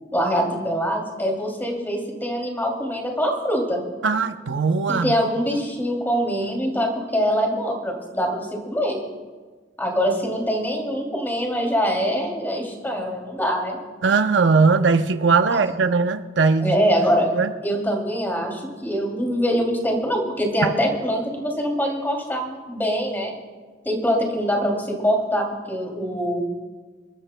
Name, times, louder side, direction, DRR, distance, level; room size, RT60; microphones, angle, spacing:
voice 1, 0.1-3.8 4.9-9.0 9.8-13.8 15.5-15.6 16.6-17.3 17.6-23.3 23.8-26.4, equal, 10° left, 1 dB, 2.6 m, -24 dB
voice 2, 4.0-5.2 14.0-16.8 17.3-17.5, right 4 dB, 85° right, 9 dB, 0.6 m, -19 dB
27.0 x 13.0 x 2.2 m, 1.4 s
head